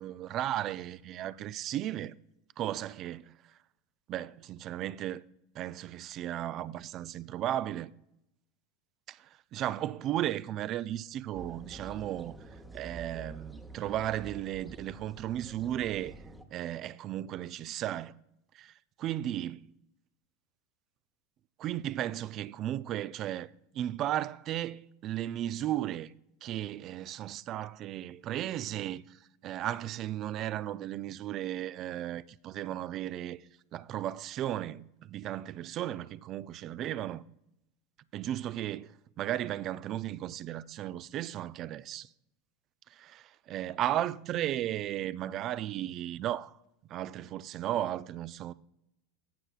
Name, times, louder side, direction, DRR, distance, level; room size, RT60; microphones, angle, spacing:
voice 1, 0.0-2.2 2.6-3.3 4.1-5.2 5.5-7.9 9.1-12.4 12.7-16.1 16.5-18.2 18.5-18.7 19.0-19.7 21.6-26.1 26.4-33.4 33.7-37.2 38.1-42.1 42.9-46.6 46.9-48.5, right 12 dB, 40° right, 0.3 m, -35 dB
sound 1, 11.3-16.4, right 2 dB, 5° right, 0.9 m, -48 dB
15.0 x 6.5 x 2.4 m
hypercardioid pair, 90°, 0 cm